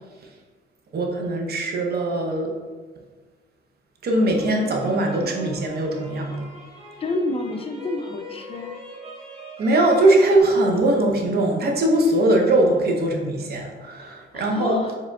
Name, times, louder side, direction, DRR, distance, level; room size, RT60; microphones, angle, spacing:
voice 1, 0.9-2.5 4.0-6.5 9.6-14.8, right 1 dB, 55° right, 2 dB, 0.8 m, -21 dB
sound 1, 4.1-10.4, right 1 dB, 30° right, 1.4 m, -40 dB
voice 2, 7.0-8.7 14.0-15.0, left 2 dB, 30° left, 5 dB, 0.5 m, -29 dB
4.6 x 3.6 x 2.3 m, 1.4 s
cardioid pair, 90°, 20 cm